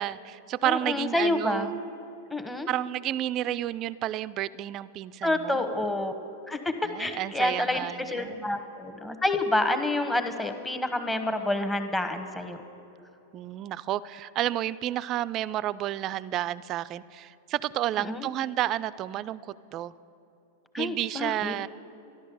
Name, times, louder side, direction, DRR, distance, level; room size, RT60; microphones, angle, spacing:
voice 1, 0.0-1.8 2.7-5.6 6.8-8.5 13.3-19.4 19.7-19.9 20.8-21.7, right 13 dB, 40° right, 18 dB, 0.4 m, -31 dB
voice 2, 0.6-1.7 2.3-2.7 5.2-6.2 6.5-6.6 7.0-12.6 18.0-18.3 20.7-21.5, left 2 dB, 10° left, 7 dB, 1.1 m, -28 dB
13.0 x 11.5 x 6.9 m, 2.9 s
hypercardioid pair, 100°, 0 cm